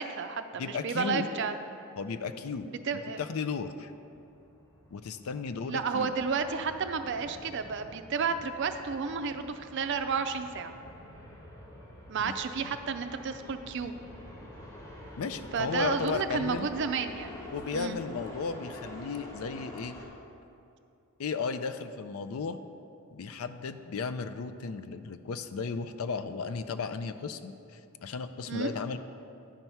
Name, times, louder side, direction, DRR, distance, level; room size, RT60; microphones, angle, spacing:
voice 1, 0.0-1.5 2.6-3.2 5.7-10.7 12.1-13.9 15.5-17.4 17.7-18.0 28.5-28.7, right 5 dB, 55° right, 8 dB, 0.4 m, -32 dB
voice 2, 0.6-1.3 2.0-2.7 3.2-3.9 4.9-6.1 12.2-12.8 15.2-16.7 17.5-20.0 21.2-22.6 23.1-29.0, left 5 dB, 75° left, 10 dB, 0.4 m, -35 dB
sound 1, 3.1-20.1, left 1 dB, 15° left, 1.2 m, -47 dB
10.0 x 4.6 x 5.5 m, 2.6 s
head